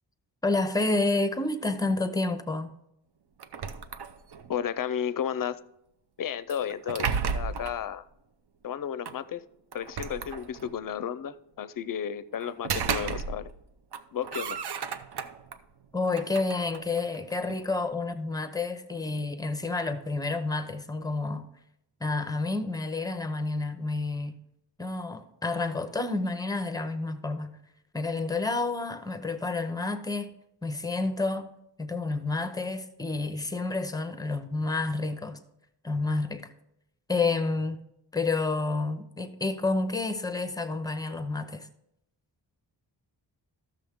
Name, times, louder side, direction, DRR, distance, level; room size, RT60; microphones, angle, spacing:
voice 1, 0.4-2.7 15.9-21.4 22.0-24.4 24.8-27.6 27.9-30.3 30.6-31.5 31.8-35.4 35.8-36.5 37.1-37.8 38.1-41.7, left 3 dB, 10° left, 0.6 m, -29 dB
sound 1, 3.4-4.5 6.5-7.8 9.0-9.2 9.7-10.8 12.4-13.6 13.9-15.6 16.0-17.7, right 6 dB, 65° right, 0.6 m, -34 dB
voice 2, 4.5-5.6 6.2-8.0 8.6-9.4 9.7-13.5 14.1-14.6, left 9 dB, 50° left, 0.5 m, -33 dB
13.5 x 6.6 x 3.6 m
wide cardioid pair, 135°, 43 cm